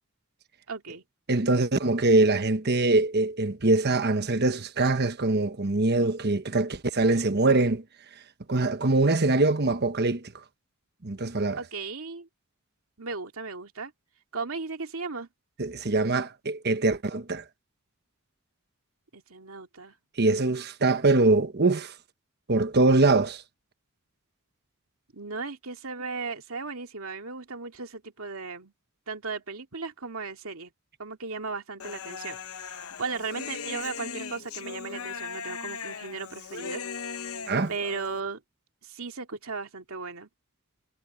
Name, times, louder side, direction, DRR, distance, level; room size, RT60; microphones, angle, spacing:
voice 1, 0.7-1.0 11.6-12.3 13.0-13.9 14.3-15.3 19.1-20.0 25.1-28.7 29.1-30.7 31.0-37.4 37.7-38.4 38.8-40.3, right 4 dB, 75° right, 2.4 m, -36 dB
voice 2, 1.3-7.8 8.5-10.3 11.0-11.6 15.6-17.4 20.2-21.9 22.5-23.4 37.5-37.7, right 2 dB, 50° right, 1.2 m, -23 dB
Human voice, 31.8-38.2, left 6 dB, 80° left, 1.0 m, -38 dB
head